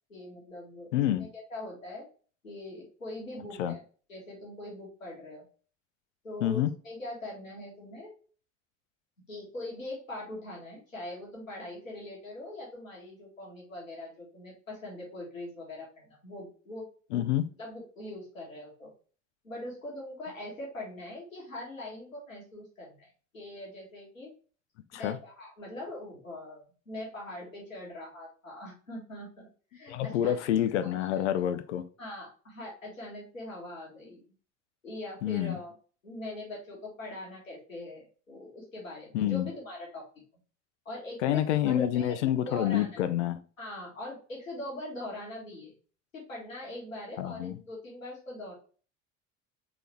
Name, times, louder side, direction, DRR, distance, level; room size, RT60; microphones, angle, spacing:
voice 1, 0.1-2.1 2.4-3.8 4.1-5.5 6.2-8.1 9.3-16.9 17.6-18.9 19.4-24.3 25.0-30.3 30.8-31.2 32.0-34.2 34.8-35.7 36.0-40.0 40.9-42.2 42.5-43.0 43.6-45.7 46.1-48.5, left 1 dB, 85° left, -3 dB, 1.9 m, -42 dB
voice 2, 0.9-1.3 3.6-3.7 6.4-6.7 17.1-17.5 24.9-25.2 29.9-31.8 35.2-35.6 39.1-39.5 41.2-43.4 47.2-47.6, left 11 dB, 65° left, 11 dB, 0.6 m, -28 dB
4.0 x 3.8 x 3.0 m, 0.39 s
figure-of-eight pair, 65°, 39 cm